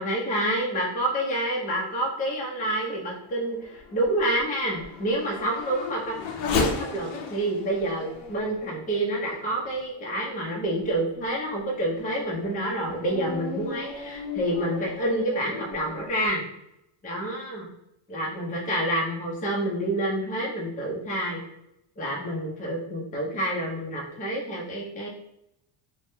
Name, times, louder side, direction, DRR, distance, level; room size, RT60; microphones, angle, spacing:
voice 1, 0.0-6.2 6.5-16.4 17.0-17.7 18.1-21.4 22.0-25.1, right 1 dB, 15° left, -3 dB, 0.6 m, -28 dB
Race car auto racing / Accelerating revving vroom, 2.3-10.2 10.8-10.9 11.5-16.3, left 4 dB, 65° left, 0.6 m, -36 dB
3.3 x 2.1 x 2.6 m, 0.82 s
cardioid pair, 155°, 50 cm